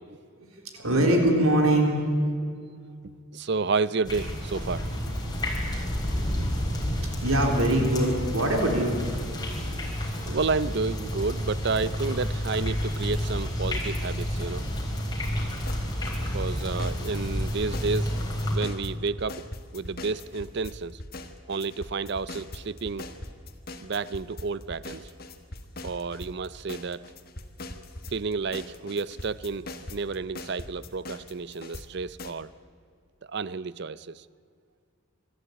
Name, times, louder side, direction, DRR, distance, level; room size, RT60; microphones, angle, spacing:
voice 1, 0.4-2.3 7.2-9.0, right 1 dB, 85° right, 2 dB, 3.9 m, -23 dB
voice 2, 3.3-4.9 10.3-14.7 16.3-18.1 18.5-19.5 19.7-21.0 21.5-23.1 23.8-25.1 25.8-27.1 28.1-32.5 33.3-34.2, right 4 dB, 55° right, 18 dB, 0.5 m, -31 dB
sound 1, 4.0-18.6, equal, 20° left, 3.9 m, -30 dB
sound 2, 15.2-15.3 15.7-20.7 21.0-31.8 32.2-32.3, left 2 dB, 45° left, 1.6 m, -40 dB
25.5 x 13.0 x 8.7 m, 2.3 s
head